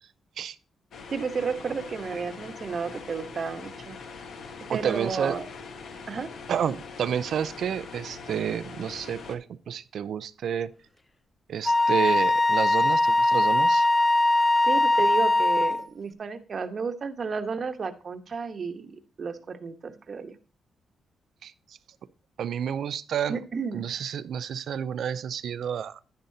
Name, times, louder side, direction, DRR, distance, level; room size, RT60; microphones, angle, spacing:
sound 1, 0.9-9.4, left 4 dB, 75° left, 1.3 m, -42 dB
voice 1, 1.1-4.0 4.7-5.4 6.1-6.3 14.6-20.3 23.3-23.8, right 5 dB, 45° right, 8 dB, 1.1 m, -32 dB
voice 2, 4.7-5.4 6.5-10.7 11.5-13.9 21.4-21.8 22.4-23.4 23.7-26.0, right 8 dB, 70° right, 15 dB, 0.5 m, -30 dB
Wind instrument woodwind instrument, 11.6-15.9, left 2 dB, 20° left, 0.6 m, -21 dB
10.5 x 10.5 x 2.8 m, 0.35 s
cardioid pair, 100°, 0 cm